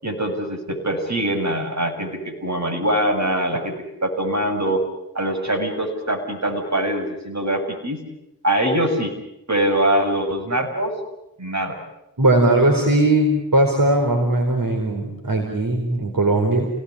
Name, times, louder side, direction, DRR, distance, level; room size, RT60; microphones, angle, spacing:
voice 1, 0.0-3.8 4.0-4.8 5.1-8.0 8.4-9.1 9.5-10.9 11.4-11.8, right 1 dB, 50° right, 4 dB, 7.1 m, -23 dB
voice 2, 12.2-16.7, right 1 dB, 70° right, 3 dB, 4.6 m, -19 dB
29.5 x 19.5 x 9.9 m, 0.90 s
wide cardioid pair, 50°, 35 cm